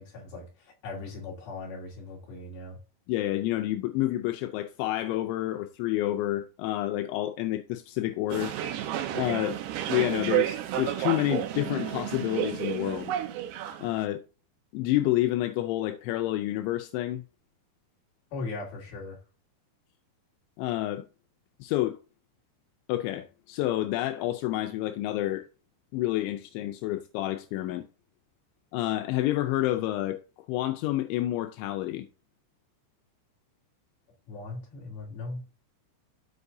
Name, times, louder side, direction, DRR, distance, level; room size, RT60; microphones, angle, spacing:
voice 1, 0.0-2.8 18.3-19.2 34.3-35.5, left 3 dB, 60° left, 4.2 m, -39 dB
voice 2, 3.1-8.5 9.1-9.6 9.9-13.1 13.8-14.2 14.7-17.2 20.6-21.0 21.6-22.0 22.9-25.5 25.9-27.9 28.7-30.2 30.5-32.1, left 15 dB, 85° left, 3.0 m, -29 dB
sound 1, 8.3-14.0, right 12 dB, 75° right, 3.0 m, -31 dB
14.5 x 5.4 x 2.7 m
omnidirectional pair, 5.3 m